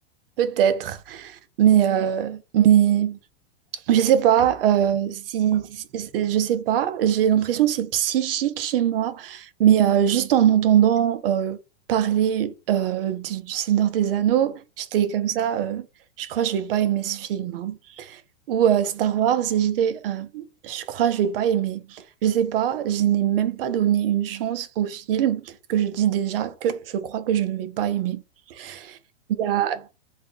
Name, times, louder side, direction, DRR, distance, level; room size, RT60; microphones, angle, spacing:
voice 1, 0.4-3.2 3.9-11.6 11.9-15.8 16.2-18.2 18.5-28.2 28.5-29.0 29.3-30.0, right 10 dB, 60° right, 0.7 m, -22 dB
3.4 x 2.4 x 3.8 m
hypercardioid pair, 145°, 32 cm